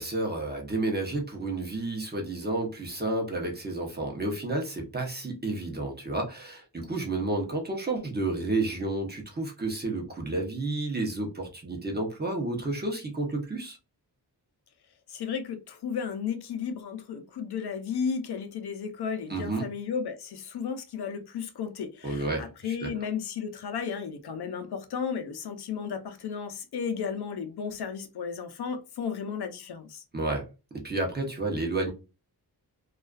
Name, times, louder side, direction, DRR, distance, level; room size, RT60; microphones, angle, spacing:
voice 1, 0.0-13.8 19.3-19.6 22.0-22.9 30.1-30.4 30.7-31.9, right 2 dB, 25° right, 0.7 m, -31 dB
voice 2, 15.1-30.0, left 6 dB, 70° left, 0.5 m, -34 dB
2.3 x 2.3 x 2.3 m
wide cardioid pair, 130°, 41 cm